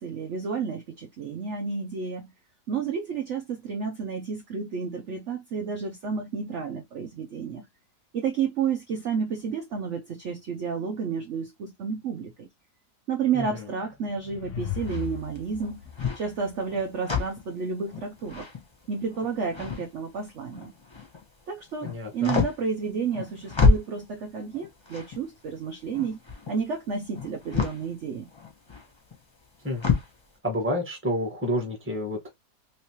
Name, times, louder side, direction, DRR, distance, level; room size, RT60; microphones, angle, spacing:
voice 1, 0.0-2.3 2.7-7.6 8.1-12.5 13.1-15.8 16.1-18.5 18.9-20.7 21.5-26.2 26.5-28.3, right 6 dB, 60° right, 0.8 m, -31 dB
sound 1, 13.7-17.2, left 10 dB, 70° left, 0.7 m, -38 dB
sound 2, 14.6-21.3 21.6-30.2, left 4 dB, 20° left, 1.0 m, -29 dB
voice 2, 21.8-22.3 29.6-29.8 30.4-32.3, equal, 10° right, 1.2 m, -29 dB
3.2 x 3.2 x 2.9 m
omnidirectional pair, 1.9 m